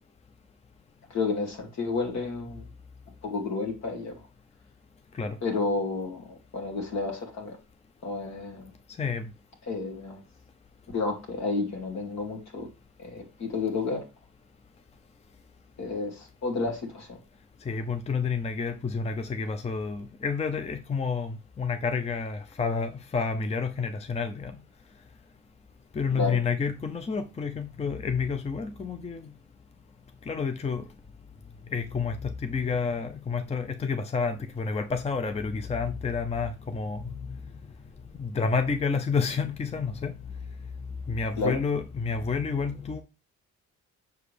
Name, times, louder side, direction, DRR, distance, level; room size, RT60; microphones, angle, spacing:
voice 1, 1.1-2.6 3.2-4.2 5.4-6.3 6.5-7.6 8.0-8.6 9.7-10.2 10.9-12.7 13.0-14.0 15.8-17.2 26.1-26.4 41.4-41.6, left 3 dB, 65° left, 2.4 m, -31 dB
voice 2, 9.0-9.3 17.6-24.6 25.9-29.3 30.3-30.8 31.7-37.4 38.2-40.1 41.1-43.0, left 5 dB, 20° left, 0.5 m, -29 dB
6.5 x 4.9 x 3.3 m
cardioid pair, 90°, 30 cm